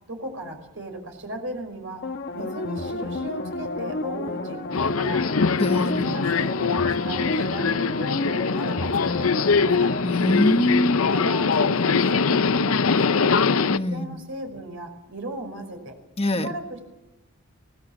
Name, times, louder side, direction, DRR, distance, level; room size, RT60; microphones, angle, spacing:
voice 1, 0.1-2.0 2.3-5.3 5.6-9.9 11.0-15.9 16.3-16.9, right 1 dB, 70° right, 5.6 m, -37 dB
sound 1, 2.0-11.4 11.8-11.9, left 2 dB, 55° left, 1.2 m, -30 dB
Subway metro underground, 4.7-13.8, left 5 dB, 80° left, 0.7 m, -23 dB
voice 2, 5.6-6.1 10.0-11.1 13.7-14.1 16.2-16.5, left 1 dB, 30° left, 1.4 m, -23 dB
24.5 x 19.0 x 7.3 m
head